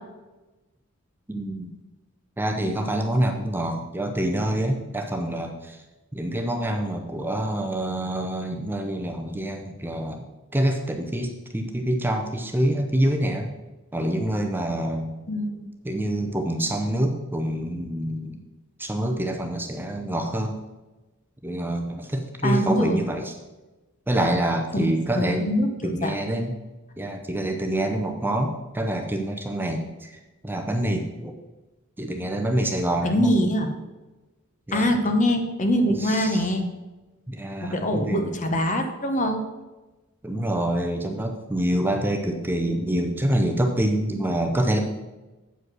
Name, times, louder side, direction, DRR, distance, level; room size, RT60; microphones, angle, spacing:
voice 1, 1.3-1.7 2.4-5.8 6.1-10.2 10.5-13.5 13.9-15.1 15.8-18.4 18.8-20.6 21.4-23.3 24.1-25.5 25.8-26.5 27.0-30.2 30.4-31.3 32.0-33.3 34.7-34.9 36.0-36.5 37.3-38.4 40.2-44.8, right 1 dB, 10° right, 3 dB, 0.6 m, -26 dB
voice 2, 15.3-15.7 22.4-23.0 24.7-26.1 33.0-33.7 34.7-36.6 37.6-39.4, equal, 35° left, 6 dB, 0.9 m, -23 dB
8.0 x 5.2 x 6.1 m, 1.1 s
head